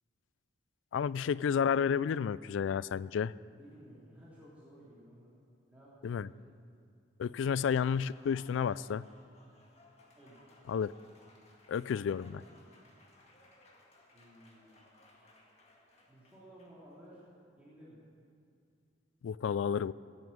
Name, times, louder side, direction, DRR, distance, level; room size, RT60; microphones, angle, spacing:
voice 1, 0.9-3.3 6.0-6.3 7.2-9.1 10.7-10.9 11.7-12.4 19.2-19.9, left 7 dB, 85° left, 20 dB, 0.3 m, -31 dB
voice 2, 3.6-5.3 5.7-6.3 10.1-10.5 14.1-14.9 16.1-17.3 17.6-18.0, right 1 dB, 10° right, -9 dB, 2.9 m, -56 dB
Applause, 7.7-16.9, left 1 dB, 35° left, 1.9 m, -62 dB
16.0 x 9.5 x 7.3 m, 2.4 s
head